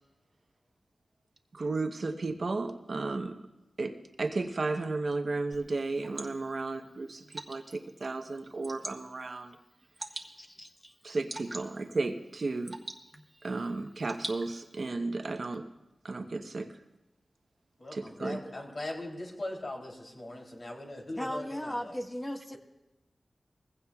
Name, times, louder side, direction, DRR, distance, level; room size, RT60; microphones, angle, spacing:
voice 1, 1.5-3.5 3.8-9.5 11.0-12.8 13.4-15.7 16.0-16.8 17.9-18.4, right 3 dB, 60° right, 5 dB, 0.9 m, -34 dB
Water / Drip, 5.5-14.9, right 2 dB, 30° right, 1.3 m, -46 dB
voice 2, 10.4-10.9 21.2-22.6, left 1 dB, 20° left, 4 dB, 1.1 m, -37 dB
voice 3, 17.8-22.0, left 1 dB, 55° left, 0 dB, 3.0 m, -40 dB
21.5 x 15.5 x 2.3 m, 0.98 s
wide cardioid pair, 70°, 0 cm